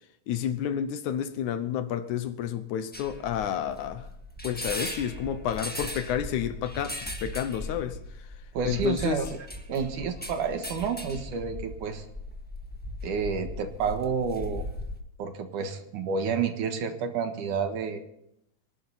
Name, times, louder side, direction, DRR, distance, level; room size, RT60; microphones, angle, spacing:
voice 1, 0.3-4.1 4.4-8.0 8.6-9.2, left 9 dB, 70° left, 2.2 m, -30 dB
sound 1, 2.9-15.0, left 1 dB, 15° left, 0.3 m, -38 dB
voice 2, 8.5-9.3 9.7-12.1 13.0-14.6 15.2-18.0, right 6 dB, 75° right, 3.0 m, -30 dB
26.0 x 11.5 x 4.1 m
omnidirectional pair, 3.7 m